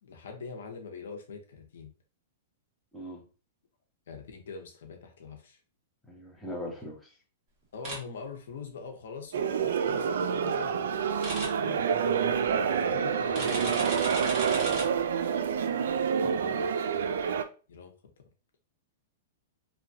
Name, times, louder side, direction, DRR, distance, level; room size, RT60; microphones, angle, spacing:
voice 1, 0.0-1.9 4.1-5.6 7.7-11.8 12.6-14.8 17.7-17.9, left 5 dB, 80° left, 3 dB, 0.7 m, -43 dB
voice 2, 6.1-7.1 16.2-16.7, equal, 5° left, -3 dB, 0.6 m, -40 dB
sound 1, 7.8-8.0 11.2-11.5 13.3-14.8, right 2 dB, 30° right, 1.4 m, -35 dB
sound 2, 9.3-17.4, right 7 dB, 80° right, 0.3 m, -28 dB
2.8 x 2.2 x 2.6 m, 0.36 s
hypercardioid pair, 155°, 0 cm